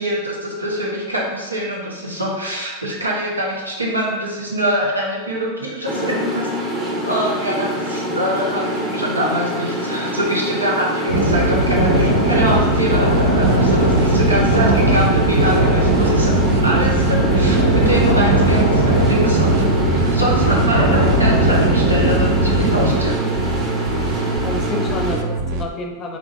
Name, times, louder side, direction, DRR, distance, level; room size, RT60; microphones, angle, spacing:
voice 1, 0.0-6.5 7.0-16.3 16.6-23.3, equal, 80° right, -3 dB, 0.8 m, -24 dB
sound 1, 5.8-25.1, equal, 20° right, 0.9 m, -25 dB
sound 2, 11.1-23.0, right 1 dB, 90° left, 0.7 m, -18 dB
sound 3, 13.4-25.6, right 4 dB, 45° right, 0.4 m, -24 dB
voice 2, 24.4-26.2, left 2 dB, 30° left, 3 dB, 0.6 m, -28 dB
4.6 x 3.1 x 2.5 m, 1.2 s
figure-of-eight pair, 90°, 0 cm